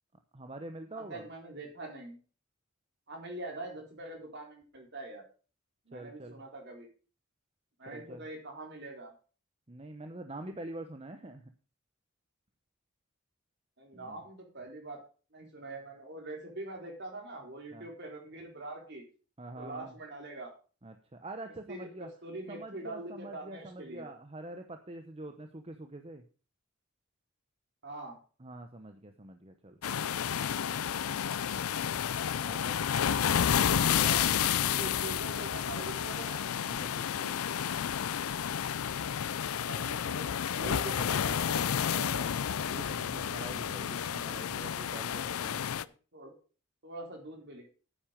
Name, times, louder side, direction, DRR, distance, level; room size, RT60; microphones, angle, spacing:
voice 1, 0.3-1.3 5.9-6.4 7.9-8.2 9.7-11.4 13.9-14.2 17.7-17.9 19.4-19.9 20.8-22.1 22.5-26.2 28.4-29.8 32.4-32.8 36.6-37.4 40.5-41.2 42.6-45.7, right 2 dB, 25° right, 6 dB, 0.9 m, -45 dB
voice 2, 1.0-2.2 3.1-5.2 5.9-6.9 7.8-9.1 13.8-15.0 15.3-19.1 19.5-20.5 21.7-21.9 22.2-24.1 27.8-28.2 33.6-34.3 34.8-36.4 39.5-42.3 46.1-46.3 46.8-47.7, right 2 dB, 55° right, 2 dB, 4.1 m, -43 dB
sound 1, 29.8-45.8, left 8 dB, 85° left, 0.5 m, -31 dB
9.8 x 9.0 x 5.2 m, 0.36 s
head